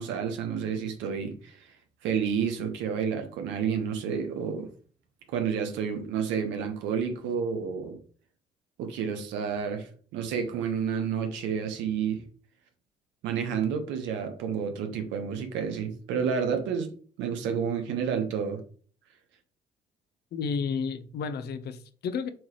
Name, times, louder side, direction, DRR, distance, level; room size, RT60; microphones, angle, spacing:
voice 1, 0.0-1.5 2.0-4.7 5.3-8.0 8.8-9.9 10.1-12.2 13.2-18.6, right 7 dB, 65° right, 1.2 m, -30 dB
voice 2, 20.3-22.3, left 5 dB, 55° left, 0.9 m, -31 dB
7.6 x 3.8 x 3.2 m
figure-of-eight pair, 45°, 20 cm